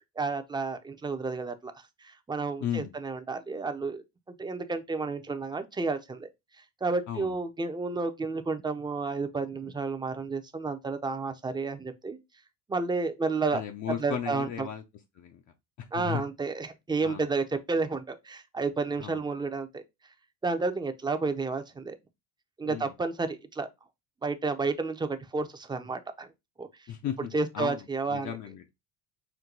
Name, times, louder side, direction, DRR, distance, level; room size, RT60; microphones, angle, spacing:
voice 1, 0.2-1.7 2.0-4.0 4.4-6.3 6.8-12.2 12.7-13.6 14.0-14.7 15.9-19.8 20.4-22.0 22.6-23.7 24.2-26.3 26.6-26.7 27.3-28.4, right 4 dB, 10° right, 0.5 m, -31 dB
voice 2, 2.6-3.0 7.1-7.4 13.5-14.8 15.1-15.4 15.8-16.2 17.0-17.3 19.0-19.2 22.6-22.9 26.9-28.7, left 9 dB, 45° left, 0.6 m, -35 dB
4.5 x 2.2 x 3.8 m
supercardioid pair, 95°, 41 cm